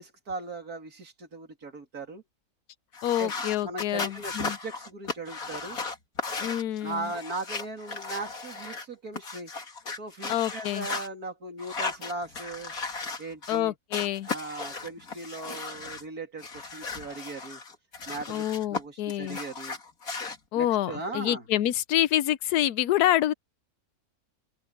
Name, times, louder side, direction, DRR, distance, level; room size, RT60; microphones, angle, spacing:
voice 1, 0.0-2.2 3.2-3.3 3.6-5.8 6.8-9.5 9.9-12.7 13.2-13.7 14.3-17.6 18.1-18.4 18.7-19.8 20.5-21.4, right 2 dB, 70° right, 3.4 m, -38 dB
sound 1, 2.9-8.8 9.1-11.1 11.6-13.6 13.9-16.0 16.4-18.8 19.1-20.4, left 4 dB, 65° left, 3.0 m, -36 dB
voice 2, 3.0-4.6 6.4-7.1 10.3-10.9 13.5-14.3 18.3-19.4 20.5-23.3, left 13 dB, 90° left, 1.2 m, -27 dB
open air
omnidirectional pair, 1.6 m